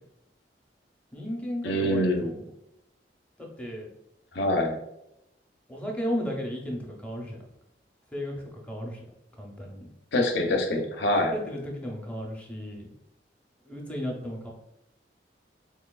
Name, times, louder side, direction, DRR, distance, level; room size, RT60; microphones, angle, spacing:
voice 1, 1.1-2.4 3.4-3.9 5.7-7.4 8.1-8.4 8.6-9.0 9.4-9.9 11.3-12.9 13.7-14.5, equal, 10° left, -1 dB, 0.6 m, -34 dB
voice 2, 1.6-2.3 4.3-4.7 10.1-11.3, left 1 dB, 70° left, 3 dB, 0.6 m, -25 dB
4.0 x 2.8 x 2.3 m, 0.83 s
head